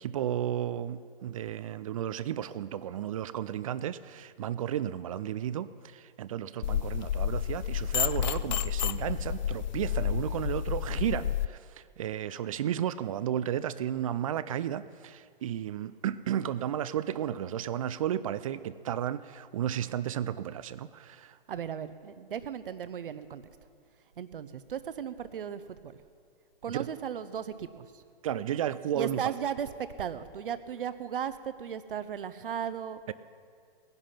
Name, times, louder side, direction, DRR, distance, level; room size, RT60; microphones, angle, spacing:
voice 1, 0.0-21.4 26.7-26.9 28.2-29.4 33.1-33.2, right 10 dB, 35° right, 16 dB, 0.4 m, -33 dB
sound 1, 6.6-11.5, left 10 dB, 50° left, 0.4 m, -30 dB
voice 2, 21.5-23.4 24.2-26.0 26.6-28.0 28.9-29.7 30.0-33.1, right 8 dB, 65° right, 13 dB, 0.9 m, -36 dB
18.0 x 10.5 x 5.7 m, 2.1 s
figure-of-eight pair, 130°, 30 cm